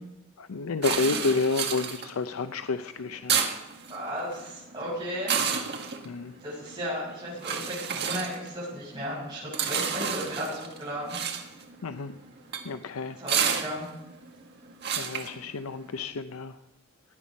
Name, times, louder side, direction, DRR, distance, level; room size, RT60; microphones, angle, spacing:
voice 1, 0.4-3.4 6.1-6.3 11.8-12.1 12.7-13.2 15.0-16.5, left 4 dB, 85° left, 10 dB, 0.6 m, -30 dB
sound 1, 0.8-16.0, right 7 dB, 55° right, 1.7 m, -32 dB
voice 2, 3.9-5.3 6.4-11.2 13.2-13.9, equal, 20° right, -10 dB, 6.9 m, -34 dB
17.0 x 10.0 x 5.3 m, 0.97 s
head